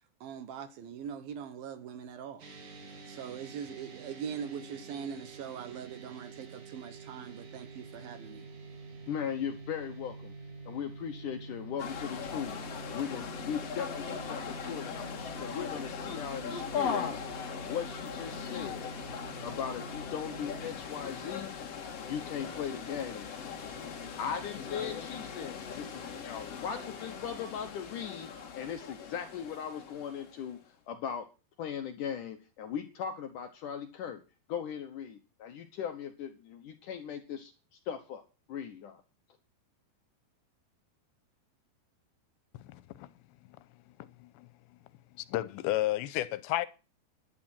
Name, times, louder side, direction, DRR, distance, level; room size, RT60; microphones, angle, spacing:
voice 1, 0.2-2.5 3.1-8.5, right 7 dB, 70° right, 2.6 m, -42 dB
sound 1, 2.4-20.7, right 3 dB, 50° right, 3.9 m, -47 dB
voice 2, 9.1-10.3 10.7-17.1 17.5-18.9 19.4-21.5 22.1-23.3 24.2-30.6 30.9-31.3 31.6-34.2 34.5-37.5 37.9-38.2 38.5-39.0, left 8 dB, 70° left, 2.1 m, -38 dB
sound 2, 11.8-30.5, left 6 dB, 45° left, 2.5 m, -39 dB
voice 3, 42.6-43.1 44.2-44.5 45.2-46.7, left 15 dB, 85° left, 3.1 m, -32 dB
16.0 x 11.0 x 4.4 m
omnidirectional pair, 4.9 m